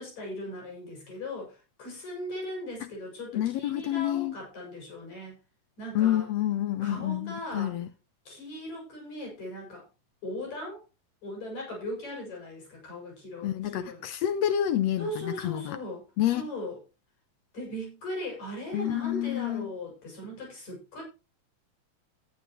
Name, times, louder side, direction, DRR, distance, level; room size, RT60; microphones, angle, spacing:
voice 1, 0.0-5.4 5.8-6.2 6.8-7.8 8.3-9.8 10.2-10.8 11.2-14.0 15.0-16.0 16.3-16.8 17.5-21.0, left 1 dB, 55° left, 8.8 m, -38 dB
voice 2, 3.3-4.4 6.0-7.9 13.4-15.8 16.2-16.4 18.7-19.7, left 12 dB, 70° left, 1.6 m, -28 dB
13.5 x 11.5 x 3.1 m
omnidirectional pair, 3.9 m